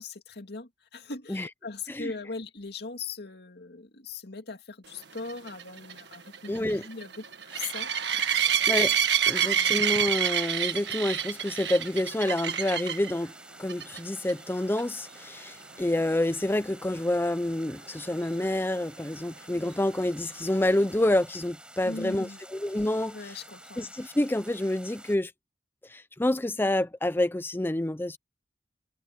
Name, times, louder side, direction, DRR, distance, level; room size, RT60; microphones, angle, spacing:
voice 1, 0.0-7.9 8.3-8.6 9.4-9.9 21.8-22.4 23.1-23.9, left 4 dB, 60° left, 2.3 m, -40 dB
sound 1, 5.2-13.1 13.7-14.0 14.3-14.4 14.8-14.9 18.4-18.5, right 9 dB, 65° right, 1.7 m, -27 dB
voice 2, 6.5-6.8 8.7-9.0 9.3-13.3 13.6-23.3 23.8-25.3 25.9-28.2, left 1 dB, 10° left, 0.5 m, -28 dB
sound 2, 7.5-25.2, right 1 dB, 5° right, 6.7 m, -50 dB
head